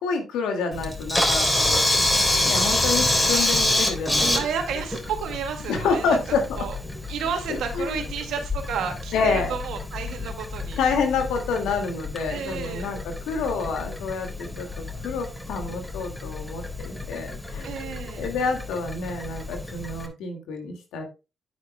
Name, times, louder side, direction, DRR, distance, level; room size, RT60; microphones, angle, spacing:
voice 1, 0.0-1.9 2.4-4.3 5.7-6.4 7.5-8.1 9.1-9.5 10.8-17.7 18.2-21.0, left 4 dB, 80° left, 2.1 m, -28 dB
Camera, 0.7-20.1, left 1 dB, 10° left, 3.5 m, -27 dB
voice 2, 4.3-6.2 6.6-6.8 7.1-10.8 12.3-12.9 17.6-18.3, right 7 dB, 75° right, 2.0 m, -31 dB
9.5 x 9.3 x 2.2 m
hypercardioid pair, 45°, 0 cm